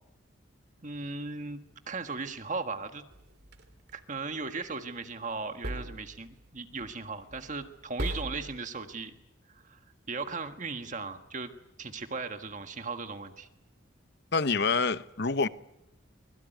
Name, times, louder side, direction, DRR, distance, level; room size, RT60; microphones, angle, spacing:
voice 1, 0.8-1.6 1.9-3.0 3.9-9.1 9.5-9.8 10.1-11.5 11.8-13.5, right 4 dB, 40° right, 1.6 m, -37 dB
sound 1, 3.1-3.9 5.6-6.4 6.8-7.0 7.3-7.7 8.0-8.6, right 1 dB, 55° right, 2.8 m, -38 dB
voice 2, 14.3-15.5, left 4 dB, 55° left, 0.9 m, -26 dB
24.5 x 21.5 x 9.3 m
head